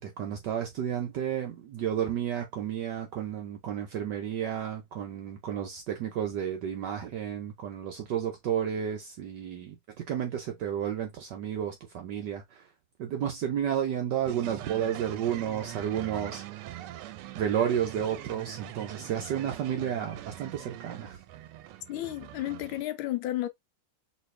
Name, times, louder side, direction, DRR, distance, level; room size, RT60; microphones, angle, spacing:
voice 1, 0.0-12.7 13.0-16.4 17.3-21.2, right 9 dB, 65° right, 1.1 m, -32 dB
sound 1, 14.3-22.8, right 14 dB, 90° right, 1.5 m, -43 dB
voice 2, 21.9-23.5, left 15 dB, 75° left, 1.4 m, -32 dB
3.3 x 2.9 x 3.2 m
omnidirectional pair, 2.4 m